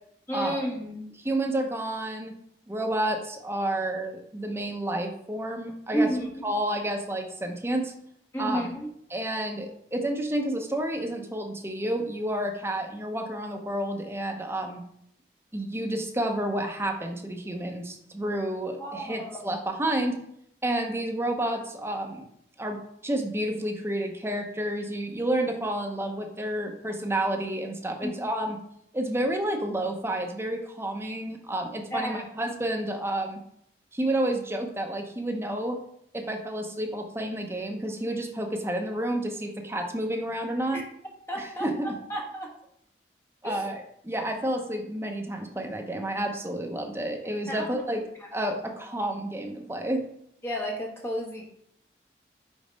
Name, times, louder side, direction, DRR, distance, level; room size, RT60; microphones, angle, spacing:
voice 1, 0.3-1.1 5.9-6.4 8.3-8.9 18.8-19.4 28.0-28.1 31.9-32.2 40.7-40.8 41.3-42.5 43.4-43.7 47.5-47.8 48.2-48.3 50.4-51.5, right 1 dB, 15° left, -1 dB, 1.3 m, -31 dB
voice 2, 1.2-2.3 2.7-6.1 6.4-7.9 8.4-8.6 9.1-14.8 15.5-20.2 20.6-22.3 22.6-28.6 28.9-33.4 33.9-35.8 36.1-40.8 41.4-41.9 43.4-48.0 48.3-50.0, right 1 dB, 15° right, 3 dB, 0.7 m, -30 dB
5.4 x 4.1 x 5.2 m, 0.71 s
head